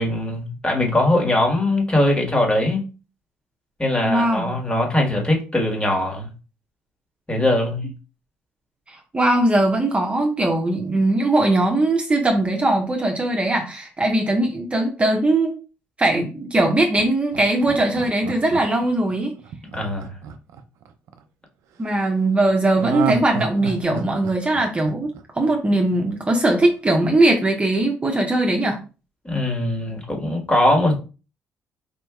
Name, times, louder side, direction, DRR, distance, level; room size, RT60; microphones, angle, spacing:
voice 1, 0.0-2.8 3.8-6.3 7.3-7.9 19.7-20.1 29.2-30.9, left 1 dB, 20° left, 1.7 m, -21 dB
voice 2, 4.0-4.5 8.9-15.6 16.0-19.3 21.8-25.1 25.3-28.8, right 2 dB, 25° right, 1.0 m, -20 dB
Laughter, 17.0-21.2 22.8-25.8 26.1-26.2, right 6 dB, 75° right, 0.5 m, -31 dB
4.4 x 2.7 x 2.4 m
supercardioid pair, 60°, 5 cm